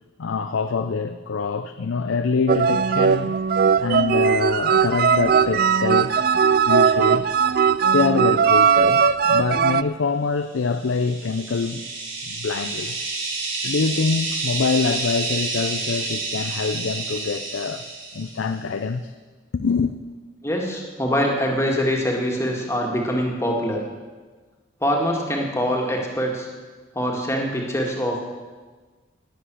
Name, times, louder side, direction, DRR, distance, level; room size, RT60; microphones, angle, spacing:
voice 1, 0.2-3.3 3.8-7.4 7.9-11.8 12.2-12.9 13.6-17.8 18.1-19.1 19.5-19.9, left 4 dB, 85° left, 0.5 m, -25 dB
sound 1, 2.5-9.8, right 6 dB, 50° right, 0.3 m, -19 dB
sound 2, 10.7-18.5, right 3 dB, 85° right, 3.4 m, -29 dB
voice 2, 20.4-23.8 24.8-26.5 26.9-28.2, equal, 15° left, 2.0 m, -24 dB
20.0 x 8.0 x 6.3 m
head